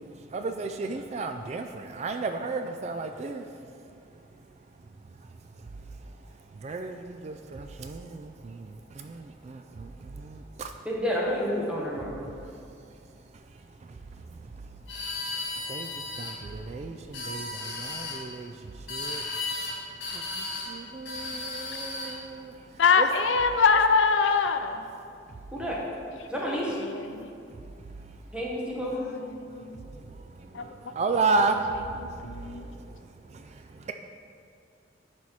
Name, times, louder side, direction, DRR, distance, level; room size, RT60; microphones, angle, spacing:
voice 1, 0.0-3.6 5.6-6.2 6.5-10.7 12.3-12.5 12.9-14.7 15.0-19.5 19.9-23.1 25.3-25.4 27.2-27.6 27.8-28.2 29.5-33.9, right 3 dB, 35° right, 6 dB, 0.3 m, -34 dB
voice 2, 10.8-12.1 25.5-25.8 26.3-26.8 28.3-29.0, equal, 5° right, -4 dB, 1.3 m, -29 dB
sound 1, 14.9-16.3 17.0-18.2 18.9-19.7 20.0-20.7 21.0-22.2, left 3 dB, 65° left, 2.1 m, -35 dB
voice 3, 22.8-24.8 26.7-27.3 29.4-29.8 30.5-30.6 32.2-32.6, left 5 dB, 85° left, 8 dB, 0.5 m, -23 dB
10.5 x 4.3 x 4.7 m, 2.4 s
head